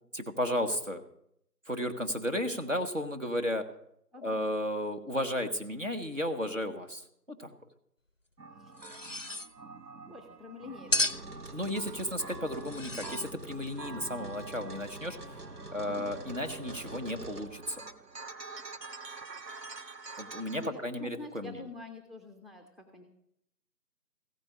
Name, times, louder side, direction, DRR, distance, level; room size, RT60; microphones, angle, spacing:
voice 1, 0.1-1.0 1.7-3.6 4.2-7.0 7.4-7.5 11.5-15.2 15.7-17.8 20.2-21.6, equal, 50° right, 6 dB, 1.3 m, -33 dB
sound 1, 8.4-20.7, right 4 dB, 85° right, 1.1 m, -46 dB
sound 2, 8.8-9.5 10.9-11.3 12.6-13.3, left 2 dB, 50° left, 0.5 m, -32 dB
voice 2, 10.1-11.1 15.9-16.1 20.6-23.0, left 3 dB, ahead, 3 dB, 0.9 m, -46 dB
sound 3, 10.9-17.5, right 2 dB, 65° right, 1.5 m, -46 dB
15.0 x 5.3 x 8.5 m, 0.74 s
figure-of-eight pair, 180°, 49 cm